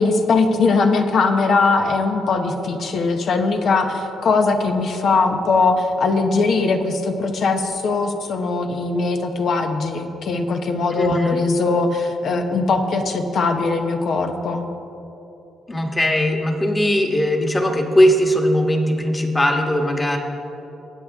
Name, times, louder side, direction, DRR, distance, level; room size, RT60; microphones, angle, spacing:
voice 1, 0.0-14.7, left 3 dB, 60° left, 5 dB, 1.1 m, -20 dB
voice 2, 11.0-11.3 15.7-20.2, equal, 15° left, 3 dB, 1.5 m, -19 dB
21.0 x 8.3 x 3.6 m, 2.9 s
cardioid pair, 90°, 0 cm